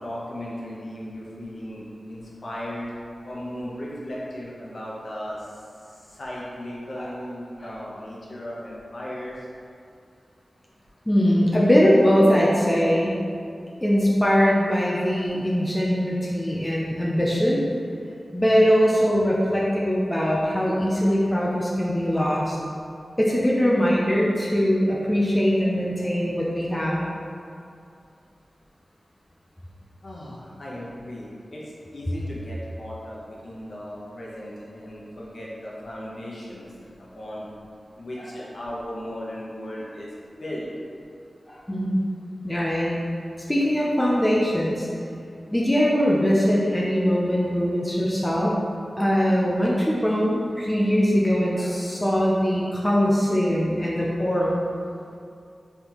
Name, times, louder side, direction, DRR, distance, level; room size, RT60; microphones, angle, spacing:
voice 1, 0.0-2.9 3.2-5.6 5.8-9.5 30.0-31.6 31.9-37.5 38.0-40.1 40.4-40.7, equal, 60° left, -6 dB, 0.9 m, -36 dB
voice 2, 11.1-13.2 13.8-17.6 18.3-22.6 23.2-27.1 38.2-38.3 41.5-42.0 42.4-43.0 43.5-44.9 45.5-48.6 49.0-54.6, equal, 15° left, -5 dB, 0.5 m, -21 dB
4.4 x 3.4 x 3.0 m, 2.4 s
wide cardioid pair, 80°, 0 cm